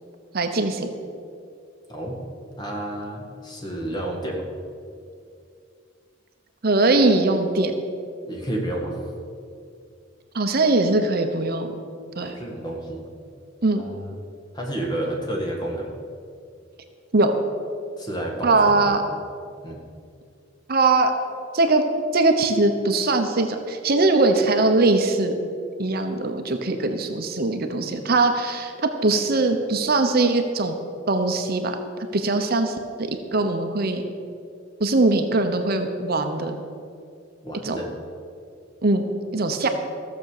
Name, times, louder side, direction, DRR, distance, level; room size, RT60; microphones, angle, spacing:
voice 1, 0.3-0.9 6.6-7.7 10.3-11.7 12.2-12.3 13.6-13.8 17.1-17.3 18.4-19.0 20.7-21.1 21.5-21.8 22.1-25.5 25.8-30.7 31.1-31.8 32.1-34.0 34.8-36.5 37.6-37.8 38.8-39.1 39.3-39.7, right 2 dB, 50° right, 6 dB, 0.9 m, -21 dB
voice 2, 1.9-2.2 2.6-4.5 8.3-9.0 12.1-13.0 13.8-14.2 14.5-15.9 18.0-19.0 19.6-19.9 37.4-37.9, right 1 dB, 20° left, 0 dB, 2.0 m, -30 dB
14.5 x 7.2 x 6.6 m, 2.4 s
head